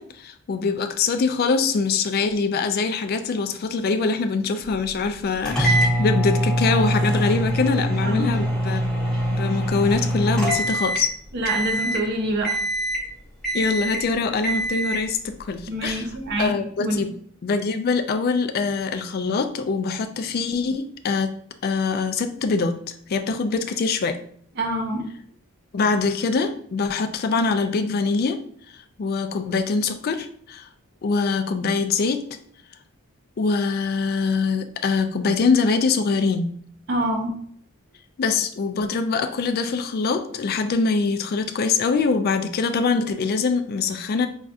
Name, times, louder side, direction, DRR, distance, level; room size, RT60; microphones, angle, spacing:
voice 1, 0.0-8.9 9.3-11.1 13.5-16.1 16.4-17.1 17.4-21.3 21.6-24.2 25.7-28.4 29.0-30.7 31.0-32.3 33.4-36.5 38.2-44.3, left 4 dB, 45° left, 8 dB, 0.3 m, -23 dB
sound 1, 5.4-11.1 11.4-12.0 12.4-13.1 13.4-14.0 14.4-15.1, right 1 dB, 5° left, 0.8 m, -23 dB
voice 2, 8.0-8.4 11.3-12.6 15.7-17.0 24.5-25.1 36.9-37.4, right 1 dB, 50° right, 2 dB, 0.7 m, -26 dB
5.1 x 2.3 x 2.4 m, 0.63 s
head